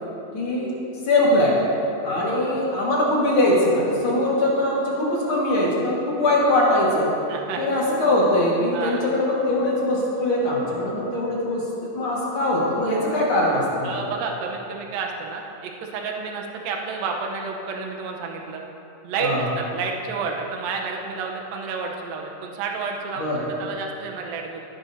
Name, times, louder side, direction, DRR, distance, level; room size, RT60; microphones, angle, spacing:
voice 1, 0.3-0.7 1.1-1.6 2.0-7.1 7.6-13.9 19.2-19.4 23.2-23.4, left 1 dB, 45° left, -5 dB, 2.0 m, -21 dB
voice 2, 7.3-7.6 8.7-9.0 13.8-18.6 19.0-24.6, right 4 dB, 75° right, 1 dB, 2.6 m, -30 dB
15.5 x 10.0 x 2.7 m, 2.8 s
omnidirectional pair, 4.3 m